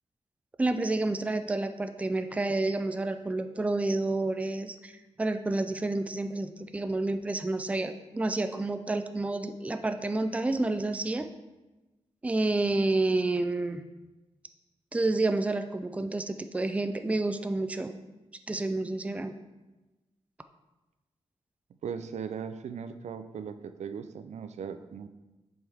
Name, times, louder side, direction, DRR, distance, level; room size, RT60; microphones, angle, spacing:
voice 1, 0.6-4.9 5.2-11.3 12.2-13.8 14.9-17.9 18.5-19.3, right 2 dB, 10° right, 9 dB, 0.4 m, -29 dB
voice 2, 21.8-25.1, right 7 dB, 75° right, 10 dB, 0.5 m, -38 dB
7.7 x 5.5 x 3.5 m, 1.1 s
wide cardioid pair, 120°, 12 cm